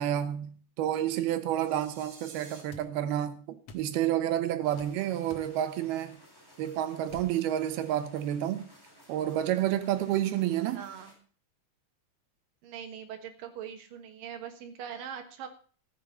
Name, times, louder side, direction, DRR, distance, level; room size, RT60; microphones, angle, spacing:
voice 1, 0.0-6.2 6.6-8.7 9.1-10.9, right 11 dB, 85° right, 3.0 m, -30 dB
sound 1, 1.4-2.6, right 3 dB, 45° right, 4.4 m, -52 dB
sound 2, 2.7-2.9 3.7-3.9 4.8-5.0 5.3-5.5 7.1-7.4, left 4 dB, 65° left, 1.8 m, -48 dB
sound 3, 4.6-11.1, equal, 5° left, 4.2 m, -57 dB
voice 2, 10.7-11.1 12.6-15.5, right 8 dB, 70° right, 2.9 m, -42 dB
14.5 x 7.6 x 5.5 m
omnidirectional pair, 4.4 m